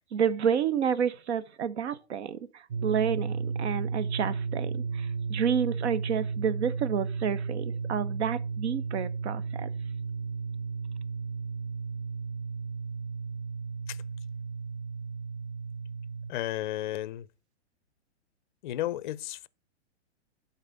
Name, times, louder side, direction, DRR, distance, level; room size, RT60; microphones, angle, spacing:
voice 1, 0.1-9.7, right 7 dB, 70° right, 1.0 m, -30 dB
sound 1, 2.7-16.3, right 5 dB, 40° right, 0.5 m, -34 dB
voice 2, 16.3-17.3 18.6-19.5, left 14 dB, 45° left, 0.4 m, -33 dB
11.5 x 4.1 x 5.3 m
hypercardioid pair, 160°, 35 cm